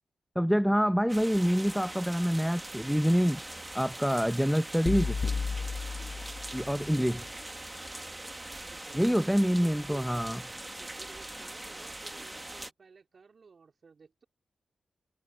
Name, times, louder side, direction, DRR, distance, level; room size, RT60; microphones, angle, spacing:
voice 1, 0.4-3.4 3.7-5.1 6.5-7.3 8.9-10.4, equal, ahead, 0.8 m, -26 dB
sound 1, 1.1-12.7, right 1 dB, 20° right, 1.9 m, -42 dB
sound 2, 4.9-7.1, left 4 dB, 60° left, 1.4 m, -33 dB
voice 2, 6.1-6.8 8.5-10.1 10.8-14.2, right 5 dB, 60° right, 3.9 m, -54 dB
supercardioid pair, 40°, 0 cm